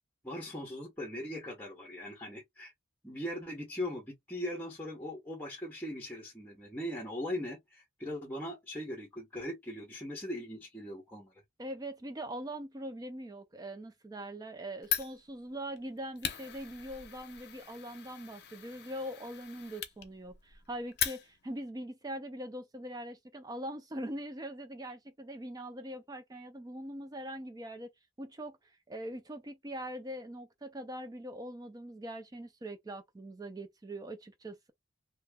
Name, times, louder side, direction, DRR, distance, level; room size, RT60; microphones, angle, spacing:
voice 1, 0.2-2.7 3.0-11.3, left 1 dB, 10° left, 0.8 m, -40 dB
voice 2, 11.6-27.9 28.2-34.7, right 1 dB, 20° right, 0.3 m, -42 dB
Fire, 14.8-21.6, left 10 dB, 55° left, 0.7 m, -40 dB
2.8 x 2.1 x 3.4 m
head